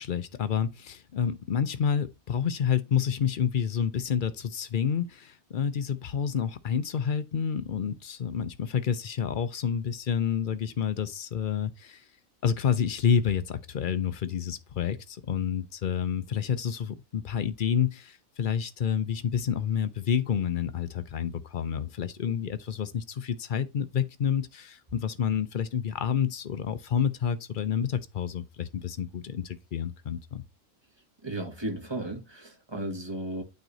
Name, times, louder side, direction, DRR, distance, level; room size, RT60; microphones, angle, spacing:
voice 1, 0.0-12.0 12.4-30.4, left 7 dB, 55° left, 0.6 m, -29 dB
voice 2, 31.2-33.4, right 1 dB, 20° right, 1.4 m, -34 dB
9.0 x 3.2 x 4.0 m
omnidirectional pair, 1.5 m